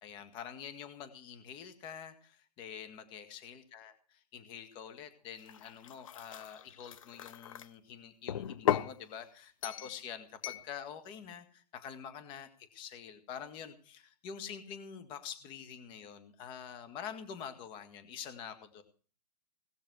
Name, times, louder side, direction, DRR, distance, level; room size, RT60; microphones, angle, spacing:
voice 1, 0.0-3.9 4.3-18.8, left 8 dB, 25° left, 9 dB, 1.8 m, -46 dB
sound 1, 5.4-7.7 8.3-9.0 9.6-10.0 10.4-10.7, left 10 dB, 55° left, 1.0 m, -36 dB
18.5 x 6.6 x 8.0 m, 0.41 s
hypercardioid pair, 155°, 21 cm